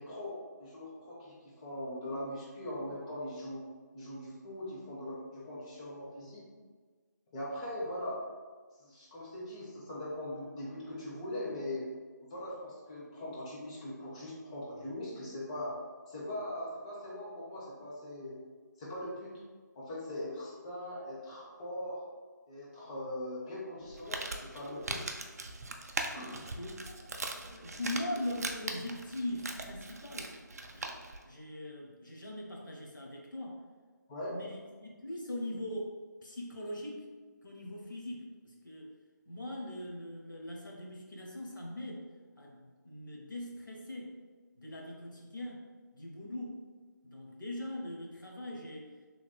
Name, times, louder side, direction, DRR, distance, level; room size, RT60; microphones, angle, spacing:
voice 1, 0.0-3.6 3.9-6.4 7.3-8.2 8.8-11.9 12.3-15.7 16.1-18.4 18.8-19.4 19.7-22.0 22.5-25.0 26.1-26.4 34.1-34.4, left 1 dB, 20° left, -6 dB, 0.7 m, -41 dB
Crumpling crinkling, 23.8-31.2, right 2 dB, 55° right, 0.4 m, -40 dB
voice 2, 27.3-30.4 30.7-30.9 31.2-33.6 34.3-37.1 37.4-38.9 39.3-42.1 42.4-44.2 44.6-46.6 47.0-48.9, left 1 dB, 80° left, -1 dB, 0.9 m, -41 dB
3.5 x 3.1 x 2.3 m, 1.4 s
figure-of-eight pair, 155°, 10 cm